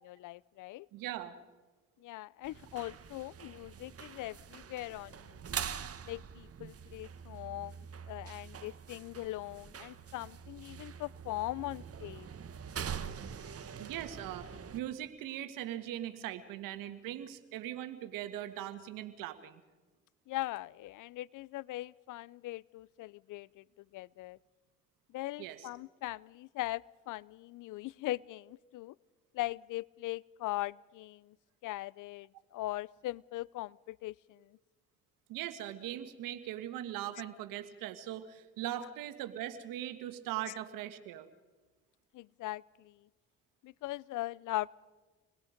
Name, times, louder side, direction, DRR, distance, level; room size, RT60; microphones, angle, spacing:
voice 1, 0.0-0.9 2.0-5.7 6.1-12.3 20.3-23.6 23.9-24.4 25.1-28.9 29.3-31.4 31.6-34.6 42.1-43.1 43.6-44.7, left 17 dB, 65° left, 24 dB, 0.6 m, -40 dB
voice 2, 0.9-1.3 13.8-19.6 25.4-25.7 35.3-41.3, right 12 dB, 80° right, 10 dB, 1.8 m, -40 dB
sound 1, 2.4-14.8, right 7 dB, 45° right, 1.5 m, -44 dB
28.0 x 21.0 x 5.2 m, 1.2 s
supercardioid pair, 60°, 33 cm